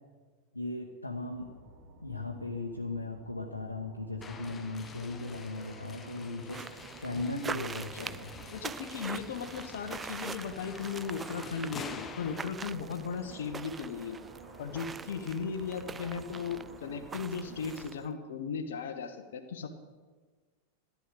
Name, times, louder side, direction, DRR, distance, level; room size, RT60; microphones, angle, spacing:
voice 1, 0.5-1.5 2.0-6.6 7.0-8.3, left 2 dB, 85° left, 1 dB, 1.1 m, -37 dB
sound 1, 1.2-17.8, right 3 dB, 50° right, 3.4 m, -53 dB
sound 2, 4.2-12.4, left 5 dB, 20° left, 1.0 m, -47 dB
sound 3, 6.5-18.1, right 5 dB, 15° right, 0.3 m, -44 dB
voice 2, 8.5-14.2 14.6-19.7, left 6 dB, 60° left, 6 dB, 1.1 m, -37 dB
14.0 x 10.5 x 5.3 m, 1.4 s
figure-of-eight pair, 90°, 0 cm